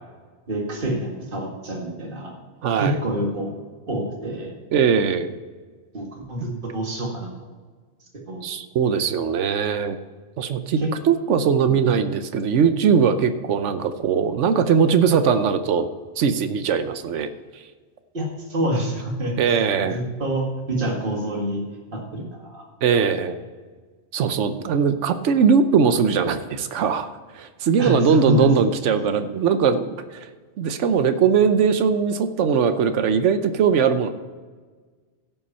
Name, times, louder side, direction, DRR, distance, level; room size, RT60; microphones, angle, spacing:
voice 1, 0.5-2.3 2.8-3.5 3.9-4.5 5.9-7.3 8.3-8.4 10.8-10.9 11.6-11.9 18.1-21.6 21.9-22.6 27.8-28.5 29.0-29.2, right 1 dB, 50° right, 0 dB, 2.0 m, -27 dB
voice 2, 2.6-3.0 4.7-5.4 8.4-10.0 10.4-10.8 11.0-15.9 16.2-17.3 19.4-20.0 22.8-23.4 24.1-30.3 30.6-34.1, right 6 dB, 90° right, 10 dB, 1.1 m, -20 dB
16.0 x 5.7 x 5.5 m, 1.4 s
omnidirectional pair, 1.2 m